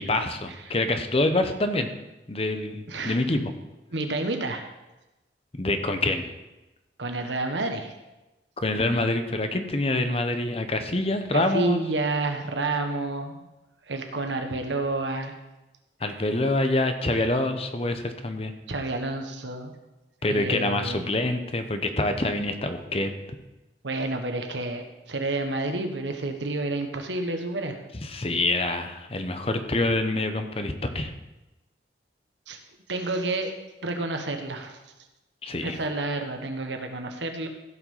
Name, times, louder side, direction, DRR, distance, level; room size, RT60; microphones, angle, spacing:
voice 1, 0.0-1.9 2.3-3.5 5.5-6.3 8.6-11.8 16.0-18.5 20.2-23.1 28.0-31.1 35.4-35.8, left 2 dB, 35° left, 8 dB, 0.9 m, -26 dB
voice 2, 3.9-4.7 7.0-7.9 11.3-13.4 13.9-15.3 18.7-19.7 20.2-21.1 23.8-27.8 32.5-32.6 32.9-33.5 33.8-34.8 35.6-37.5, right 2 dB, 85° right, 5 dB, 1.4 m, -29 dB
15.5 x 5.6 x 5.6 m, 1.0 s
head